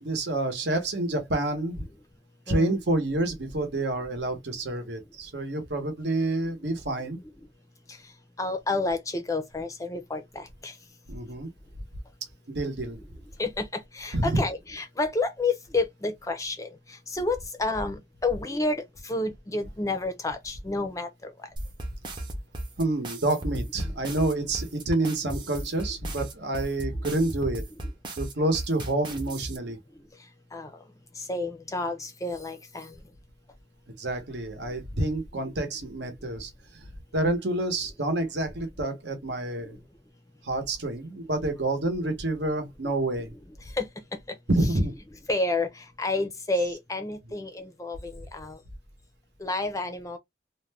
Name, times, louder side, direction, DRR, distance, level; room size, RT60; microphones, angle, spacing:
voice 1, 0.0-1.8 2.5-7.2 11.1-11.5 12.5-13.0 14.1-14.3 22.8-27.6 28.1-29.8 34.0-36.9 37.1-39.8 40.4-43.3 44.5-44.9, right 2 dB, 70° right, 0.9 m, -28 dB
voice 2, 8.4-10.7 13.4-16.7 17.1-21.3 30.5-30.7 31.2-32.9 43.8-43.9 45.3-45.7 46.0-48.6 49.4-50.2, left 2 dB, 20° left, 0.5 m, -30 dB
sound 1, 21.6-29.6, right 1 dB, 25° right, 0.6 m, -35 dB
2.5 x 2.1 x 3.2 m
head